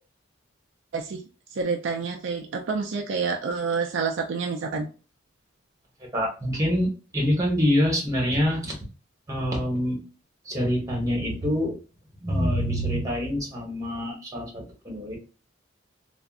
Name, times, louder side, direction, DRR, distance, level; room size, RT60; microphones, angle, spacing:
voice 1, 1.5-4.9, right 5 dB, 65° right, 3 dB, 0.4 m, -28 dB
voice 2, 6.1-8.8 9.3-10.0 10.4-11.8 12.2-15.2, equal, 20° right, -2 dB, 1.1 m, -25 dB
3.5 x 2.1 x 2.4 m, 0.34 s
head